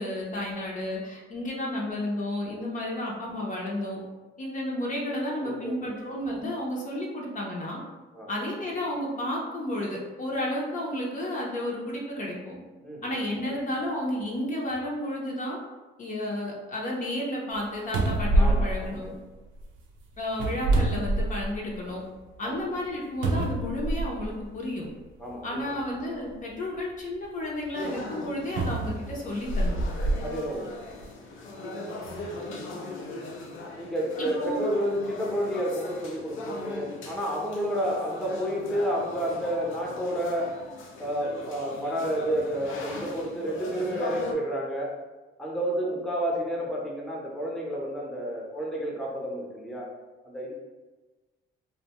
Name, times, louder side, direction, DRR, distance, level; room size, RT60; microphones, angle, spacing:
voice 1, 0.0-4.0 4.4-7.8 8.3-12.6 13.0-15.6 16.0-19.2 20.2-22.0 22.4-24.9 25.4-29.8 34.2-34.6, left 1 dB, 40° left, -2 dB, 0.6 m, -32 dB
voice 2, 5.4-6.0 8.1-8.3 12.8-13.1 18.4-19.0 22.4-22.6 25.2-25.7 30.2-31.1 33.8-40.5 41.0-44.9 45.4-49.9 50.2-50.5, equal, ahead, -3 dB, 0.6 m, -30 dB
sound 1, 17.5-17.6 17.9-19.6 20.3-21.7 22.2-22.3 23.2-24.3 25.3-25.4 28.6-30.2 30.9-31.0, right 2 dB, 75° right, 0.4 m, -26 dB
sound 2, 27.7-44.3, left 3 dB, 85° left, 0.5 m, -40 dB
2.6 x 2.1 x 2.9 m, 1.2 s
cardioid pair, 90°, 20 cm